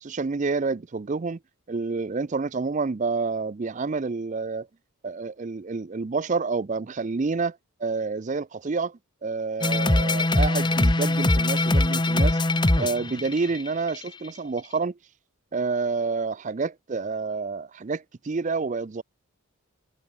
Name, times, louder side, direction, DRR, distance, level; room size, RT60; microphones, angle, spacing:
voice 1, 0.0-1.4 1.7-4.7 5.0-12.4 12.8-15.0 15.5-19.0, right 4 dB, 35° right, 0.4 m, -28 dB
sound 1, 9.6-14.1, left 2 dB, 20° left, 0.9 m, -22 dB
head